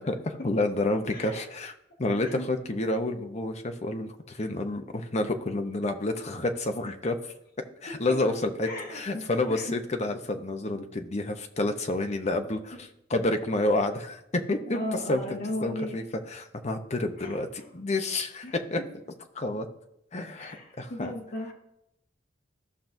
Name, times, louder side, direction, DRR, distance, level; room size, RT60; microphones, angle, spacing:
voice 1, 0.0-1.7 2.0-7.3 7.8-14.8 15.1-15.2 15.6-18.8 19.3-19.7 20.1-21.1, left 2 dB, 40° left, 6 dB, 0.8 m, -29 dB
voice 2, 1.1-1.4 2.2-2.5 8.1-8.2 8.6-9.0 9.5-9.7 12.7-12.8 14.7-16.0 17.2-17.6 18.4-18.5 20.3-21.5, left 1 dB, 55° left, -1 dB, 1.5 m, -36 dB
14.0 x 5.9 x 2.7 m, 0.81 s
head